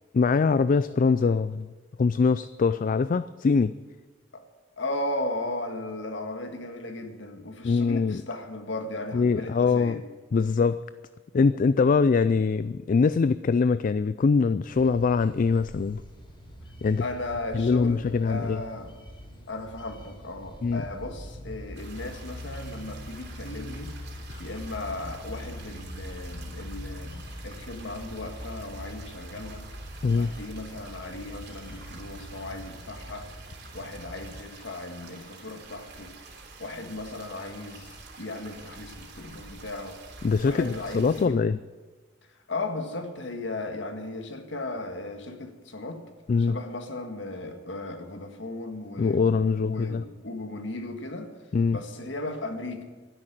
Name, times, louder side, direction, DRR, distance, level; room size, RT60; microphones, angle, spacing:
voice 1, 0.1-1.7 2.0-3.8 7.6-8.2 9.1-10.0 10.3-10.8 11.3-16.0 16.8-17.0 17.5-18.6 20.6-20.8 24.3-24.4 30.0-30.3 40.2-41.6 46.3-46.6 49.0-50.0 51.5-51.8, left 4 dB, 45° left, 15 dB, 0.3 m, -23 dB
voice 2, 4.8-10.0 17.0-18.9 19.5-29.7 30.1-33.3 33.7-36.2 36.6-40.0 40.4-41.5 42.5-46.0 46.4-49.4 49.6-51.3 51.7-52.8, left 2 dB, 70° left, 6 dB, 1.8 m, -36 dB
sound 1, 14.7-34.4, equal, 30° left, 4.1 m, -42 dB
sound 2, 21.7-41.3, right 4 dB, 60° right, 3.2 m, -48 dB
12.5 x 11.0 x 9.0 m, 1.4 s
head